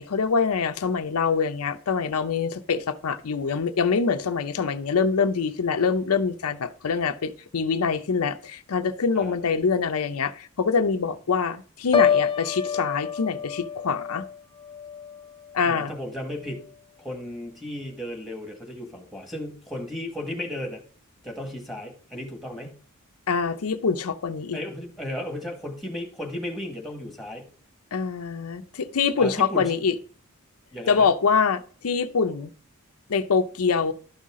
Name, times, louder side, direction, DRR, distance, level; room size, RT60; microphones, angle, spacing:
voice 1, 0.0-14.2 15.5-15.9 23.3-24.6 27.9-29.9 30.9-32.5 33.1-33.9, left 5 dB, 85° left, 9 dB, 0.6 m, -24 dB
Piano, 11.9-15.9 16.3-16.7, left 7 dB, 25° left, 0.4 m, -28 dB
voice 2, 15.6-16.6 17.0-20.8 21.2-22.8 24.5-27.5 28.6-28.7 29.2-29.7 30.7-31.1, left 1 dB, ahead, 2 dB, 1.6 m, -35 dB
12.0 x 5.6 x 3.7 m, 0.42 s
head